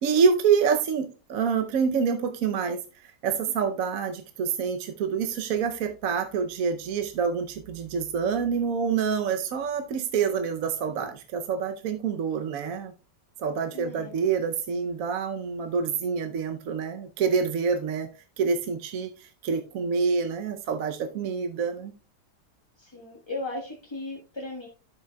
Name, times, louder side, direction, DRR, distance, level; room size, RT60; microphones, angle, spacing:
voice 1, 0.0-12.9 13.4-18.1 18.4-21.9, right 6 dB, 60° right, 5 dB, 1.0 m, -27 dB
voice 2, 13.7-14.2 22.8-24.7, left 2 dB, 15° left, -3 dB, 1.1 m, -36 dB
12.0 x 7.4 x 2.3 m, 0.35 s
omnidirectional pair, 1.9 m